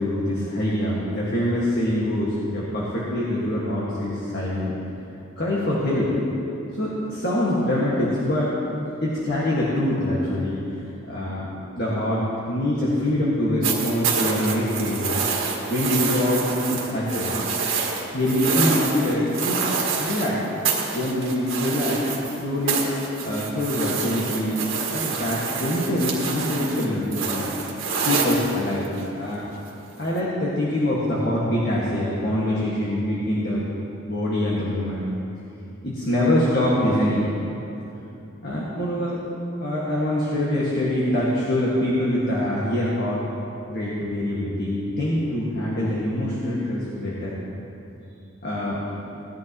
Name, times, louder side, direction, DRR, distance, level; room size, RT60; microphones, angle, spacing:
voice 1, 0.0-4.7 5.4-6.1 6.7-8.5 9.0-10.6 11.1-11.5 11.8-15.2 15.7-16.4 16.7-17.3 18.1-19.6 20.0-20.4 20.9-22.8 23.2-24.6 24.9-27.5 28.0-28.9 29.1-29.4 30.0-33.6 34.1-35.0 35.8-37.3 38.4-39.2 39.6-43.2 43.7-47.3 48.4-48.8, left 1 dB, 50° left, -7 dB, 1.9 m, -24 dB
sound 1, 13.6-20.3 20.6-22.4 22.7-29.0 30.2-30.3, right 5 dB, 70° right, 1.8 m, -27 dB
18.0 x 11.5 x 3.1 m, 2.9 s
head